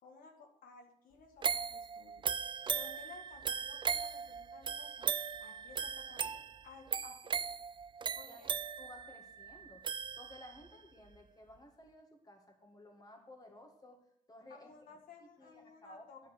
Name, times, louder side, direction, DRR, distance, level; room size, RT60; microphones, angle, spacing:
voice 1, 0.0-2.1 2.7-5.1 5.4-7.5 8.1-8.5 14.5-16.2, left 4 dB, 85° left, 2 dB, 1.8 m, -56 dB
sound 1, 1.4-10.7 11.1-11.2, right 6 dB, 35° right, 0.4 m, -38 dB
voice 2, 8.8-9.9 10.2-14.0 14.3-16.1, left 1 dB, 25° left, 3 dB, 2.0 m, -56 dB
10.5 x 5.1 x 8.0 m, 0.70 s
cardioid pair, 100°, 14 cm